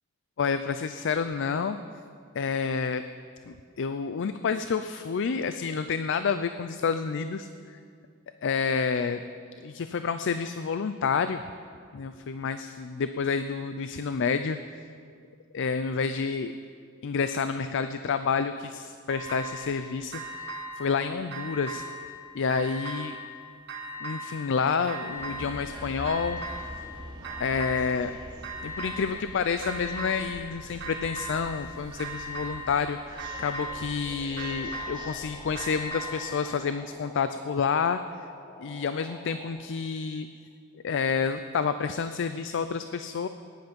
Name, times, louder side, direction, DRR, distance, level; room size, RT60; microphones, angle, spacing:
voice 1, 0.4-1.8 2.3-3.0 3.5-7.8 8.4-9.2 9.6-11.4 11.9-14.8 15.5-16.5 17.0-20.5 20.8-21.9 22.3-23.2 24.0-26.4 27.4-28.1 28.6-38.0 38.6-40.3 40.8-43.3, left 5 dB, 60° left, 10 dB, 0.4 m, -29 dB
sound 1, 19.1-19.8 20.1-21.0 21.3-22.2 22.5-23.4 23.7-24.5 24.9-25.7 26.1-26.9 27.2-28.1 28.4-29.3 29.6-30.5 30.8-31.7 32.0-32.9 33.2-34.0 34.4-36.4, equal, 50° right, 1.4 m, -38 dB
sound 2, 25.1-35.8, right 1 dB, 25° right, 3.1 m, -44 dB
sound 3, 34.0-39.5, left 1 dB, 25° left, 2.3 m, -48 dB
17.5 x 10.5 x 5.3 m, 2.2 s
head